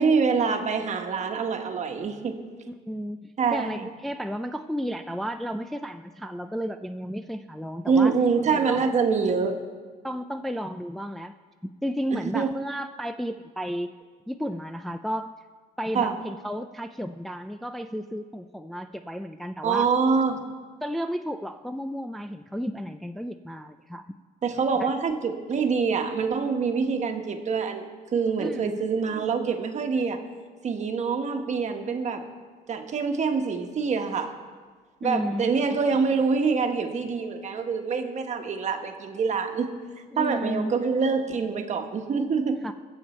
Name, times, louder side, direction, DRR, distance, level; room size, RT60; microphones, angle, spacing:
voice 1, 0.0-2.4 3.4-3.9 7.9-9.6 12.1-12.5 15.9-16.2 19.6-20.4 24.4-27.9 28.1-30.2 30.6-32.2 32.7-34.3 35.0-39.7 40.2-42.6, right 5 dB, 45° right, 5 dB, 1.3 m, -25 dB
voice 2, 2.7-8.1 8.5-8.9 10.0-11.3 11.6-13.9 14.3-15.3 15.8-19.9 20.8-24.0 24.8-24.9 28.4-28.9 35.0-35.6 40.1-40.7 42.6-42.7, equal, ahead, 7 dB, 0.4 m, -33 dB
21.5 x 7.2 x 4.4 m, 1.5 s
cardioid pair, 110°, 17 cm